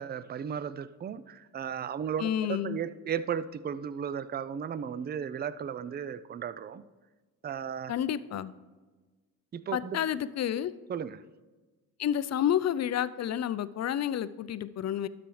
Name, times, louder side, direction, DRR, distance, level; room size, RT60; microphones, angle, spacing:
voice 1, 0.0-6.8 7.4-7.9 9.5-10.0 10.9-11.2, right 8 dB, 25° right, 15 dB, 0.4 m, -35 dB
voice 2, 2.2-2.8 7.9-8.5 9.7-10.7 12.0-15.1, left 10 dB, 45° left, 16 dB, 0.5 m, -30 dB
12.5 x 5.9 x 3.2 m, 1.3 s
supercardioid pair, 55°, 37 cm